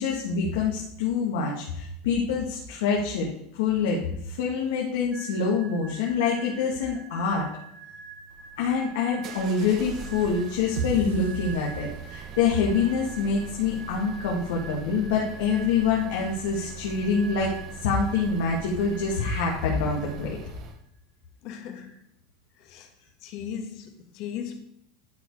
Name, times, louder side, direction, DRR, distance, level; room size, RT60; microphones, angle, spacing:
voice 1, 0.0-7.5 8.6-20.4, left 5 dB, 80° left, 2.0 m, -26 dB
sound 1, 5.1-20.7, right 5 dB, 10° right, 1.6 m, -45 dB
sound 2, 8.3-20.8, right 6 dB, 40° right, 1.0 m, -42 dB
sound 3, 10.8-12.6, right 6 dB, 90° right, 0.9 m, -34 dB
voice 2, 21.4-21.9 22.6-22.9 23.2-24.6, left 8 dB, 50° left, 1.5 m, -37 dB
11.5 x 4.8 x 4.8 m
supercardioid pair, 150°, 0 cm